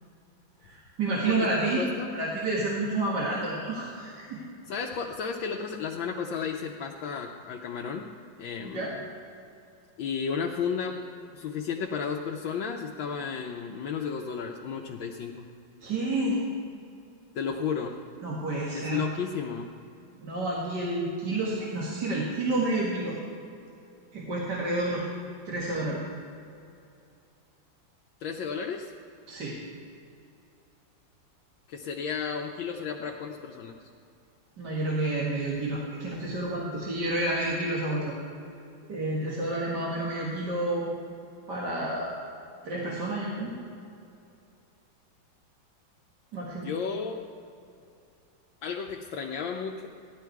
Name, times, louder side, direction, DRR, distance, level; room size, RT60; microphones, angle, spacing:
voice 1, 0.6-1.8 2.1-4.4 8.6-8.9 15.8-16.4 18.2-19.1 20.2-23.2 24.1-25.0 25.5-26.0 29.3-29.6 34.6-38.2 38.9-40.9 41.5-42.2 42.6-43.5 46.3-46.7, right 2 dB, 60° right, -5 dB, 2.4 m, -29 dB
voice 2, 1.3-2.1 4.7-8.1 8.4-9.0 10.0-11.0 11.3-15.5 17.3-18.0 18.7-19.7 28.2-28.9 31.7-33.8 46.6-47.2 48.6-49.9, left 6 dB, 75° left, 0 dB, 1.5 m, -33 dB
16.0 x 11.5 x 4.6 m, 2.6 s
omnidirectional pair, 2.2 m